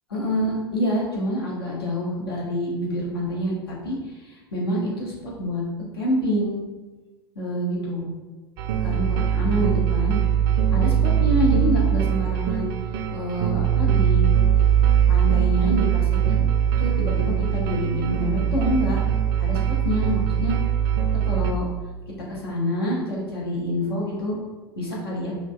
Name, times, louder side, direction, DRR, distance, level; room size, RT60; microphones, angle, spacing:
voice 1, 0.1-3.5 3.8-5.6 5.9-6.6 7.3-8.1 8.8-10.2 10.7-12.6 13.1-14.2 15.1-16.5 16.8-19.0 19.4-20.5 21.1-21.7 22.3-24.4 24.8-25.3, equal, 75° left, -4 dB, 1.1 m, -27 dB
sound 1, 8.6-21.5, right 9 dB, 60° right, 0.4 m, -21 dB
5.1 x 2.2 x 2.3 m, 1.3 s
figure-of-eight pair, 80°, 13 cm